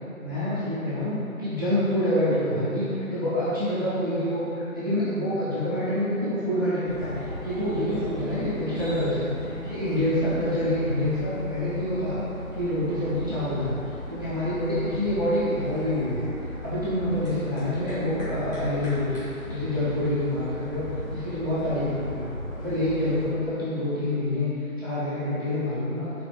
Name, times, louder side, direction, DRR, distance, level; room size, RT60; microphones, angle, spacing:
voice 1, 0.2-12.2 12.5-13.8 14.1-22.3 22.5-24.5 24.8-26.1, left 1 dB, 15° right, -13 dB, 0.7 m, -27 dB
sound 1, 6.8-23.3, left 1 dB, 15° left, 1.3 m, -37 dB
5.4 x 3.8 x 5.0 m, 2.7 s
figure-of-eight pair, 155°, 43 cm